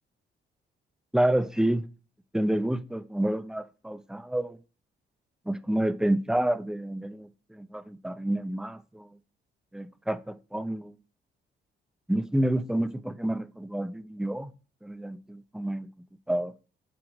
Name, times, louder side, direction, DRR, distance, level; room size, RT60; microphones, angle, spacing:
voice 1, 1.1-1.9 2.3-4.6 5.5-9.1 9.7-10.9 12.1-14.5 14.8-15.9 16.3-16.5, right 1 dB, 5° right, 0.9 m, -29 dB
11.5 x 4.7 x 4.9 m
cardioid pair, 90°, 20 cm